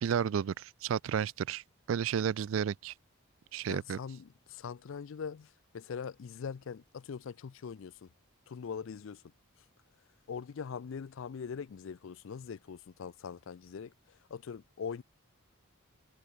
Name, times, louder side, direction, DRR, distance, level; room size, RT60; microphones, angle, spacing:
voice 1, 0.0-1.6 1.9-2.9 3.5-4.0, right 8 dB, 65° right, 0.3 m, -32 dB
voice 2, 3.7-8.1 8.5-9.2 10.3-13.9 14.3-15.0, left 6 dB, 65° left, 0.4 m, -42 dB
head